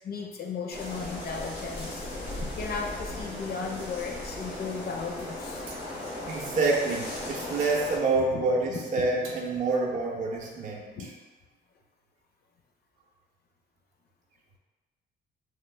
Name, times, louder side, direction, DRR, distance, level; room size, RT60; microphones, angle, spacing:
voice 1, 0.0-2.1 2.4-5.6 8.3-8.4 8.7-8.8 11.0-11.1, left 5 dB, 50° left, 1 dB, 0.5 m, -35 dB
sound 1, 0.7-8.0, left 1 dB, 90° left, 1.2 m, -37 dB
sound 2, 5.7-5.8 7.5-7.7 8.6-8.8 9.2-9.5, right 3 dB, 90° right, 0.6 m, -51 dB
voice 2, 6.3-11.1, right 3 dB, 40° right, -2 dB, 0.5 m, -27 dB
3.0 x 2.0 x 3.2 m, 1.3 s
cardioid pair, 90°, 20 cm